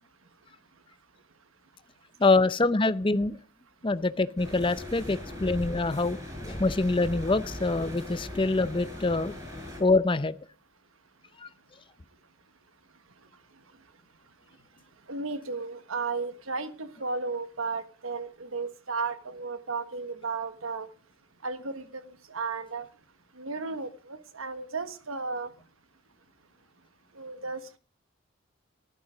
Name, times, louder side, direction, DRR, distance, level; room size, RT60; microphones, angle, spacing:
voice 1, 2.2-3.4 3.8-9.3 9.8-10.4 11.4-11.5, left 3 dB, 25° left, 14 dB, 0.5 m, -25 dB
sound 1, 4.4-9.8, left 1 dB, 20° right, 7.0 m, -39 dB
voice 2, 15.1-20.9 21.4-22.9 23.4-25.5 27.1-27.8, right 4 dB, 90° right, 11 dB, 1.3 m, -34 dB
14.5 x 11.5 x 5.0 m, 0.38 s
head